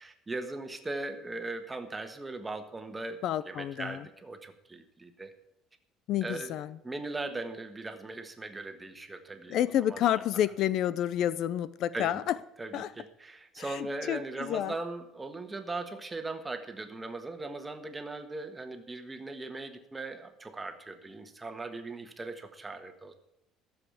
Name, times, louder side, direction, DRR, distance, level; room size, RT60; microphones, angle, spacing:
voice 1, 0.0-3.2 3.5-5.3 6.2-6.6 6.8-9.6 9.9-10.2 11.9-12.2 12.6-23.1, right 2 dB, 15° right, 1.4 m, -39 dB
voice 2, 3.2-4.0 6.1-6.8 9.5-12.4 12.7-12.9 13.6-14.7, left 11 dB, 55° left, 0.4 m, -29 dB
14.0 x 7.2 x 8.3 m
cardioid pair, 140°, 0 cm